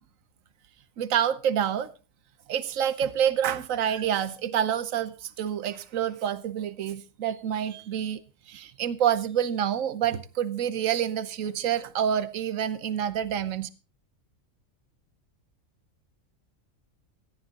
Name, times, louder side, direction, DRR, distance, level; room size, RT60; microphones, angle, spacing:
voice 1, 1.0-1.9 2.5-8.2 8.5-13.7, right 9 dB, 75° right, 1.3 m, -27 dB
18.0 x 13.5 x 2.9 m
omnidirectional pair, 1.4 m